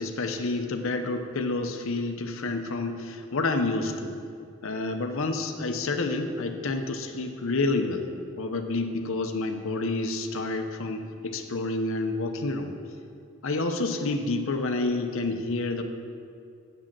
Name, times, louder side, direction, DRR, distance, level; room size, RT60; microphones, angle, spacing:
voice 1, 0.0-4.2 4.6-8.1 8.4-12.7 13.4-15.8, left 2 dB, 60° left, 5 dB, 0.7 m, -29 dB
7.5 x 7.2 x 7.3 m, 2.4 s
head